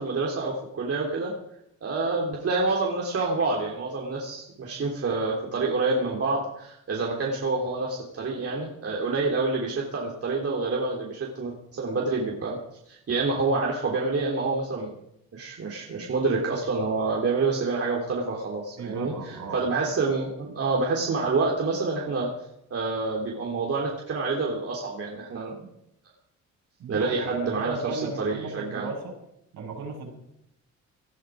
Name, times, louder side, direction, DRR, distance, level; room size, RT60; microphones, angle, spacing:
voice 1, 0.0-1.3 1.8-12.6 12.9-14.9 15.3-19.1 19.5-22.3 22.7-25.7 26.9-28.9, right 3 dB, 50° right, -2 dB, 3.4 m, -27 dB
voice 2, 18.8-19.6 26.8-29.1 29.5-30.1, right 3 dB, 80° right, -1 dB, 6.8 m, -35 dB
18.5 x 12.5 x 5.1 m, 0.77 s
cardioid pair, 90°, 30 cm